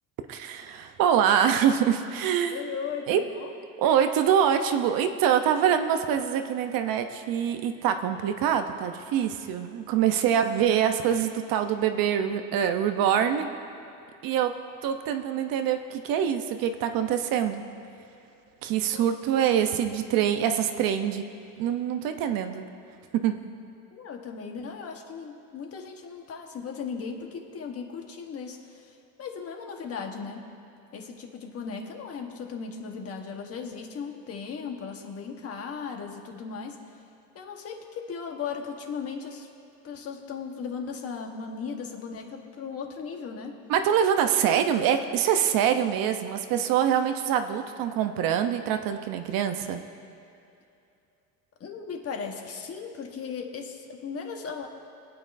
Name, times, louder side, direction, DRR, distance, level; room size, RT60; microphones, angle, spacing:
voice 1, 0.3-2.6 3.1-3.2 3.8-13.5 14.2-14.5 14.8-17.6 18.6-21.2 21.6-22.6 23.1-23.4 43.7-49.8, right 9 dB, 65° right, 7 dB, 0.8 m, -25 dB
voice 2, 2.5-3.5 18.9-19.1 23.9-30.5 30.9-36.8 37.3-39.5 39.8-43.6 51.6-54.7, left 6 dB, 40° left, 3 dB, 1.3 m, -37 dB
25.0 x 8.8 x 2.6 m, 2.6 s
cardioid pair, 135°, 36 cm